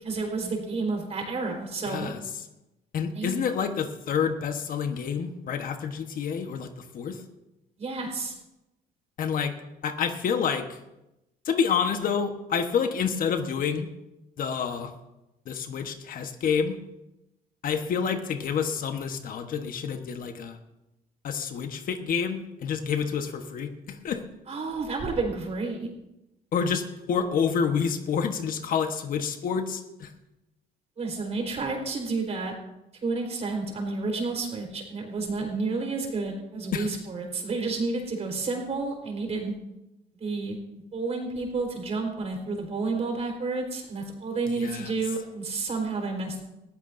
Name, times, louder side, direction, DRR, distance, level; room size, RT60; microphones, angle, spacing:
voice 1, 0.0-2.1 3.1-3.4 7.8-8.3 24.5-25.9 31.0-32.5 33.0-39.5 40.2-40.6 40.9-46.4, right 3 dB, 40° right, 2 dB, 4.2 m, -30 dB
voice 2, 1.9-2.2 2.9-6.7 6.9-7.2 9.2-9.5 9.8-10.8 11.4-13.9 14.4-14.9 15.5-16.8 17.6-20.6 21.2-24.2 26.5-30.1 36.7-36.9 44.5-44.9, left 6 dB, 55° left, 6 dB, 1.3 m, -28 dB
20.0 x 14.5 x 2.7 m, 0.92 s
cardioid pair, 110°, 17 cm